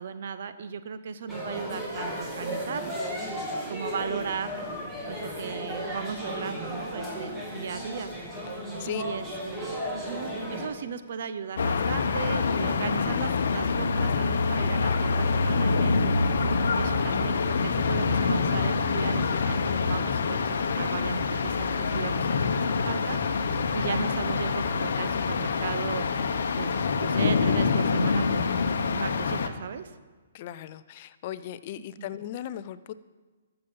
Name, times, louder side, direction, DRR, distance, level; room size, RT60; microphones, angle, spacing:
voice 1, 0.0-3.4 3.7-4.6 5.1-8.1 8.8-16.5 16.8-26.1 26.5-28.4 28.8-29.9 32.0-32.1, right 6 dB, 60° right, 11 dB, 0.7 m, -36 dB
sound 1, 1.3-10.7, equal, 10° right, 2.0 m, -35 dB
sound 2, 11.6-29.5, left 4 dB, 70° left, 0.9 m, -26 dB
voice 2, 30.3-32.9, left 11 dB, 40° left, 15 dB, 0.4 m, -37 dB
13.5 x 6.9 x 5.4 m, 1.3 s
hypercardioid pair, 150°, 0 cm